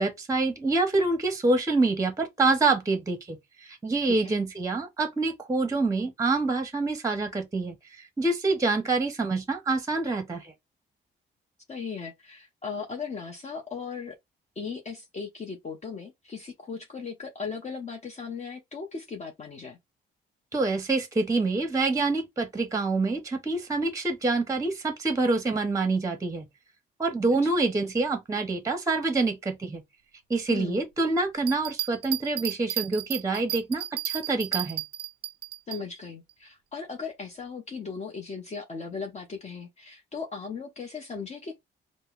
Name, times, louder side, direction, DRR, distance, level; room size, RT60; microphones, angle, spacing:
voice 1, 0.0-3.4 3.6-7.7 8.2-10.5 20.5-26.5 27.0-29.8 30.3-34.8, right 3 dB, 15° right, 0.7 m, -26 dB
voice 2, 11.7-14.2 14.6-19.8 27.4-27.5 30.5-30.8 35.7-41.6, left 5 dB, 35° left, 0.8 m, -37 dB
Bell, 31.4-35.8 36.3-36.4, right 13 dB, 55° right, 0.4 m, -33 dB
5.2 x 2.0 x 2.4 m
cardioid pair, 90°, 20 cm